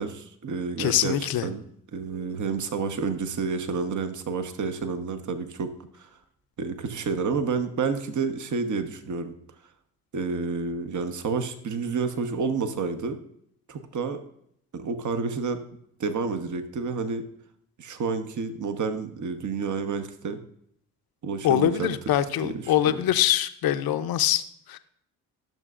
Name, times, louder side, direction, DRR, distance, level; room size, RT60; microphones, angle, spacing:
voice 1, 0.0-1.2 1.4-1.6 1.9-5.7 6.0-6.1 6.6-9.3 10.1-13.2 13.7-14.2 14.7-15.6 16.0-17.2 17.8-20.4 21.2-21.9 22.4-23.0, right 5 dB, 45° right, 8 dB, 1.0 m, -29 dB
voice 2, 0.8-1.5 21.4-24.4 24.7-24.8, left 11 dB, 55° left, 11 dB, 0.7 m, -23 dB
12.0 x 6.6 x 2.5 m, 0.70 s
hypercardioid pair, 50°, 42 cm